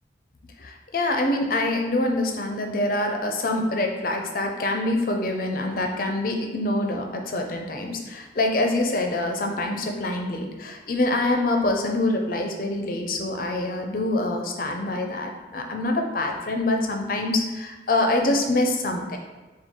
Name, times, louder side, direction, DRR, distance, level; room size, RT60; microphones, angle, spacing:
voice 1, 0.6-19.2, left 2 dB, 50° left, 3 dB, 0.5 m, -25 dB
4.6 x 2.3 x 3.6 m, 1.2 s
head